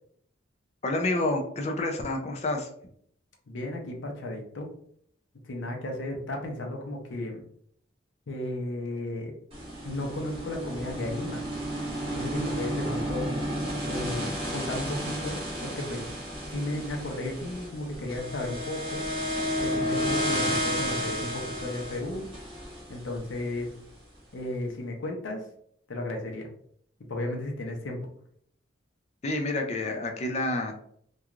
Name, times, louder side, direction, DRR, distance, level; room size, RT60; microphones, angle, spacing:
voice 1, 0.8-2.7 29.2-30.7, left 2 dB, 35° left, 3 dB, 0.4 m, -28 dB
voice 2, 3.5-4.7 5.4-7.4 8.3-9.3 9.8-11.4 12.1-13.3 13.9-16.1 16.5-19.0 19.6-22.3 22.9-23.7 24.3-25.4 25.9-26.5 27.1-28.0, left 1 dB, 80° left, 2 dB, 0.6 m, -34 dB
sound 1, 9.5-23.7, equal, 30° right, 1.0 m, -32 dB
2.9 x 2.3 x 2.3 m, 0.66 s
head